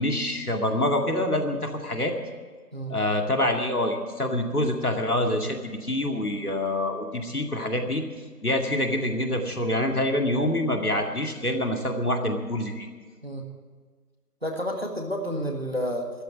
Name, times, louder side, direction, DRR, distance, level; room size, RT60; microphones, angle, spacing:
voice 1, 0.0-2.1 2.9-8.0 8.4-12.9, left 1 dB, 70° left, 3 dB, 2.3 m, -26 dB
voice 2, 14.4-16.1, equal, 40° right, 3 dB, 1.7 m, -30 dB
13.0 x 11.5 x 8.6 m, 1.5 s
figure-of-eight pair, 180°, 47 cm